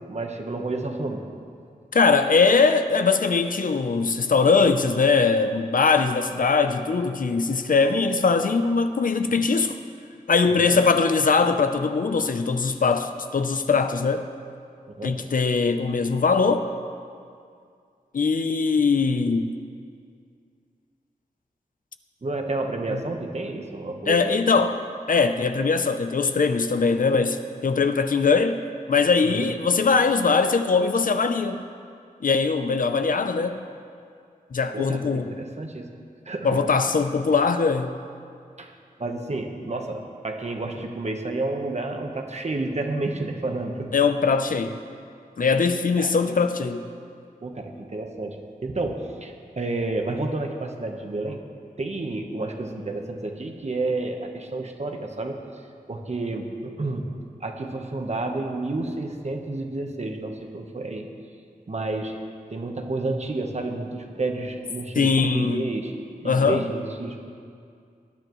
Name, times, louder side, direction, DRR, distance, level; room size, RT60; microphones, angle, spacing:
voice 1, 0.1-1.3 10.6-10.8 14.9-15.2 22.2-24.3 29.2-29.5 34.7-35.9 36.2-36.7 38.6-38.7 39.0-43.9 46.0-46.1 47.4-48.4 48.6-51.4 51.8-55.4 55.9-57.1 57.4-61.0 61.7-62.1 62.5-65.9 66.2-67.2, right 2 dB, 50° right, 3 dB, 1.2 m, -30 dB
voice 2, 1.9-9.8 10.3-14.3 15.0-16.7 18.1-19.5 22.9-23.0 24.1-24.8 25.1-28.6 28.9-31.6 32.2-33.6 34.5-35.3 36.4-38.0 43.9-44.8 45.4-46.8 65.0-65.6 66.2-66.7, left 4 dB, 65° left, 9 dB, 0.6 m, -21 dB
19.0 x 10.5 x 3.1 m, 2.3 s
wide cardioid pair, 85°, 15 cm